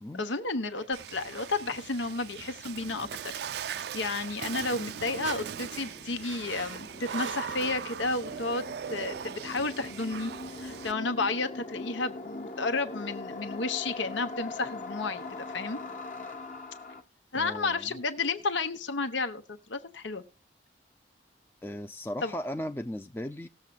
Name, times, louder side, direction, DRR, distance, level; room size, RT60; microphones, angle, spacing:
voice 1, 0.1-3.1 3.6-8.6 8.9-10.3 10.6-15.8 17.3-20.2 22.2-22.3, left 3 dB, 85° left, 1.0 m, -32 dB
sound 1, 0.8-1.4 2.4-2.7 5.0-5.7 6.2-7.9 8.6-8.7, right 7 dB, 85° right, 0.7 m, -44 dB
Water / Splash splatter, 0.9-10.9, right 8 dB, 60° right, 0.4 m, -40 dB
sound 2, 1.8-17.0, left 2 dB, 40° left, 1.1 m, -43 dB
voice 2, 17.4-18.0 21.6-23.5, left 1 dB, 10° left, 0.4 m, -37 dB
18.5 x 7.3 x 2.4 m
head